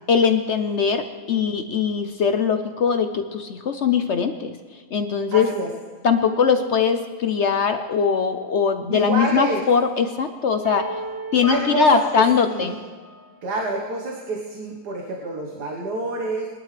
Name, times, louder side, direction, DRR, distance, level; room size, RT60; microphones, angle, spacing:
voice 1, 0.1-4.6 4.9-5.5 6.0-10.9 11.3-12.8, left 6 dB, 60° left, 8 dB, 0.8 m, -21 dB
voice 2, 5.3-5.7 8.9-9.6 11.5-12.0 12.5-12.8 13.4-16.5, right 2 dB, 75° right, 0 dB, 1.9 m, -27 dB
sound 1, 10.6-13.6, right 2 dB, 30° left, 2.7 m, -35 dB
21.5 x 11.5 x 3.3 m, 1.5 s
omnidirectional pair, 1.8 m